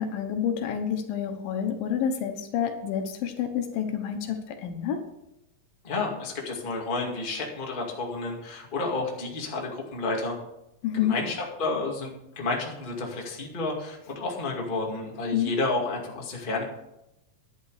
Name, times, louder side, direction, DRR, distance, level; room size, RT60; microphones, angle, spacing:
voice 1, 0.0-5.0 10.8-11.2 15.3-15.5, left 8 dB, 80° left, 6 dB, 2.9 m, -28 dB
voice 2, 5.8-10.3 11.0-16.6, left 3 dB, 20° left, -1 dB, 1.6 m, -31 dB
11.0 x 10.5 x 4.9 m, 0.87 s
omnidirectional pair, 4.1 m